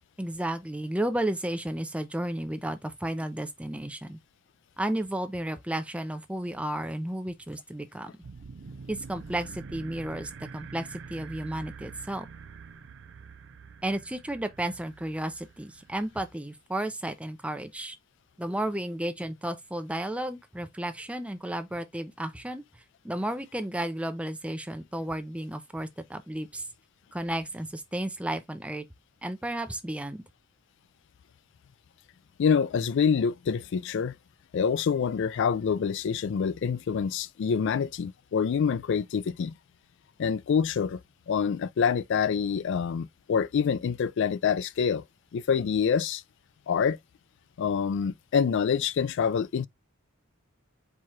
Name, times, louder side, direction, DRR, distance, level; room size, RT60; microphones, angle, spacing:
voice 1, 0.2-4.2 4.8-8.1 8.9-12.3 13.8-18.0 18.4-22.6 23.0-26.6 27.1-28.8 29.2-30.2, right 1 dB, 5° right, 0.5 m, -33 dB
sound 1, 8.2-16.3, right 5 dB, 60° right, 0.5 m, -46 dB
voice 2, 32.4-34.1 34.5-39.6 40.2-41.0 41.3-45.0 45.3-46.2 46.7-47.0 47.6-49.7, left 6 dB, 60° left, 0.3 m, -26 dB
4.7 x 2.4 x 4.3 m
head